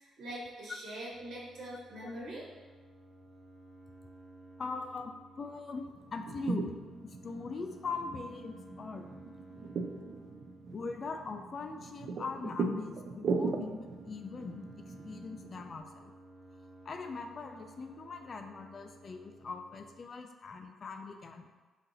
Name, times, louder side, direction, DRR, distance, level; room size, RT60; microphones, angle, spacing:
voice 1, 0.0-2.4, right 1 dB, 80° right, -6 dB, 1.2 m, -43 dB
sound 1, 1.1-20.0, right 1 dB, 20° right, 0.9 m, -56 dB
voice 2, 4.6-6.8 7.0-9.1 10.7-16.1 16.8-21.5, left 4 dB, 45° left, 6 dB, 0.4 m, -41 dB
sound 2, 6.0-15.8, right 4 dB, 55° right, 0.4 m, -39 dB
4.0 x 2.6 x 4.1 m, 1.3 s
cardioid pair, 90°, 0 cm